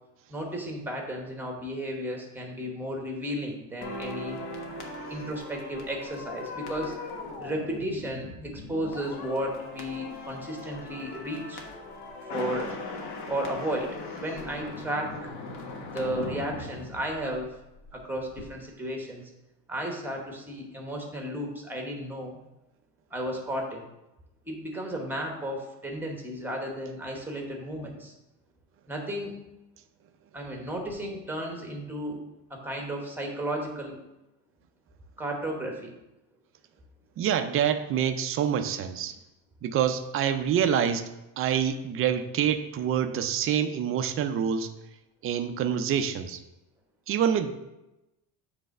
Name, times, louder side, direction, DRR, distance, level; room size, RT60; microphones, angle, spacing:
voice 1, 0.3-4.4 5.1-7.0 7.4-11.6 12.3-12.7 13.3-15.3 15.8-17.5 17.9-19.2 19.7-22.4 23.1-23.9 24.5-28.1 28.9-29.3 30.3-32.2 32.5-34.0 35.2-35.9, right 1 dB, 5° right, 0 dB, 1.0 m, -34 dB
sound 1, 3.8-18.0 18.2-18.4, left 3 dB, 60° left, 1.3 m, -39 dB
voice 2, 37.2-39.1 39.6-44.7 45.2-46.4 47.1-47.5, right 8 dB, 35° right, 9 dB, 0.4 m, -26 dB
7.7 x 3.4 x 6.4 m, 0.95 s
cardioid pair, 165°, 41 cm